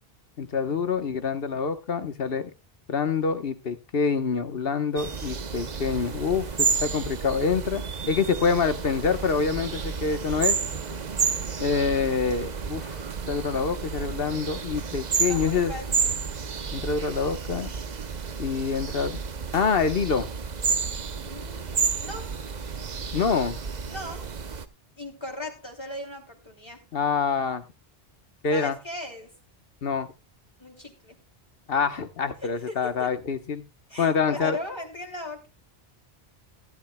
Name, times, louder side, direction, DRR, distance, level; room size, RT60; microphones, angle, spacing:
voice 1, 0.4-2.5 2.9-10.5 11.6-13.0 13.3-15.7 16.7-17.7 18.4-19.2 19.5-20.3 23.1-23.6 26.9-27.6 28.4-28.8 29.8-30.1 31.7-33.6 34.0-34.6, left 5 dB, 65° left, 9 dB, 1.3 m, -26 dB
sound 1, 5.0-24.7, right 5 dB, 45° right, 0.9 m, -31 dB
voice 2, 15.3-16.3 21.2-21.6 22.0-22.4 23.9-24.3 25.0-26.9 28.5-29.4 30.6-31.1 32.4-33.1 33.9-35.5, left 1 dB, 25° left, 2 dB, 2.9 m, -38 dB
16.0 x 12.0 x 2.2 m, 0.26 s
omnidirectional pair, 1.0 m